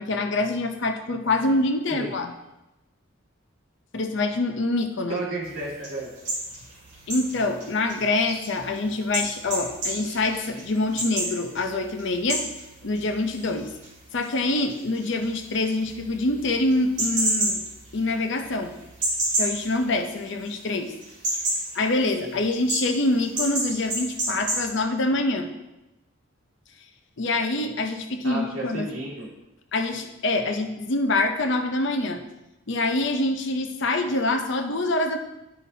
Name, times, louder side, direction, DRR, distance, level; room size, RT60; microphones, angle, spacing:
voice 1, 0.0-2.3 3.9-5.2 7.1-12.5 12.8-13.7 14.1-17.6 17.9-18.8 19.4-20.9 21.7-25.5 27.2-28.9 29.7-32.2 32.7-35.2, left 2 dB, 60° left, 5 dB, 0.6 m, -25 dB
voice 2, 5.1-6.1 28.2-29.3, right 2 dB, 85° right, -4 dB, 2.2 m, -32 dB
sound 1, 5.4-20.6 20.9-24.7, right 1 dB, 35° right, 2.1 m, -31 dB
9.0 x 5.7 x 2.8 m, 0.96 s
head